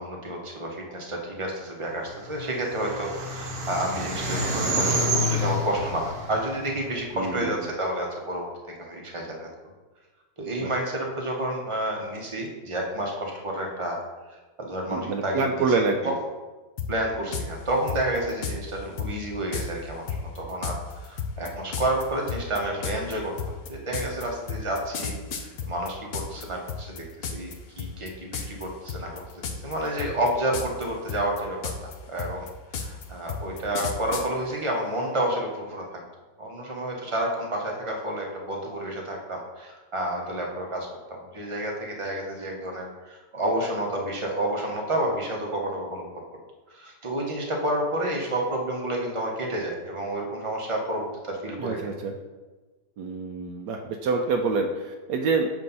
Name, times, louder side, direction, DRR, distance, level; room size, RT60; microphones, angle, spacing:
voice 1, 0.0-8.5 8.8-9.5 10.4-14.0 14.6-15.7 16.0-16.1 16.9-20.1 20.3-20.7 21.0-23.3 23.7-35.8 36.4-46.1 46.7-51.8, right 1 dB, 30° right, 0 dB, 0.6 m, -30 dB
sound 1, 2.0-7.5, equal, 45° right, 1.0 m, -29 dB
voice 2, 7.2-7.5 10.6-10.7 14.9-16.2 51.6-52.1 53.0-55.5, right 4 dB, 85° right, 3 dB, 1.2 m, -26 dB
sound 2, 16.8-16.9 17.3-17.5 17.9-18.6 19.0-19.1 19.5-19.7 20.1-26.4 26.7-27.5 27.8-28.1 28.3-28.6 28.9-29.7 30.0-30.8 31.1-34.3, left 6 dB, 75° left, 0.5 m, -32 dB
7.4 x 2.7 x 5.4 m, 1.2 s
omnidirectional pair, 1.8 m